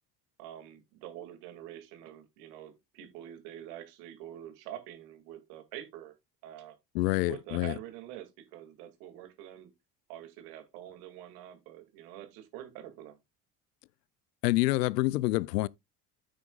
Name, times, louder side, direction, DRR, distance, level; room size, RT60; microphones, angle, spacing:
voice 1, 0.4-6.1 6.4-6.8 7.2-9.7 10.1-13.2, right 11 dB, 75° right, 2.4 m, -46 dB
voice 2, 6.9-7.7 14.4-15.7, left 19 dB, 80° left, 0.6 m, -27 dB
9.3 x 8.8 x 2.4 m
hypercardioid pair, 65°, 48 cm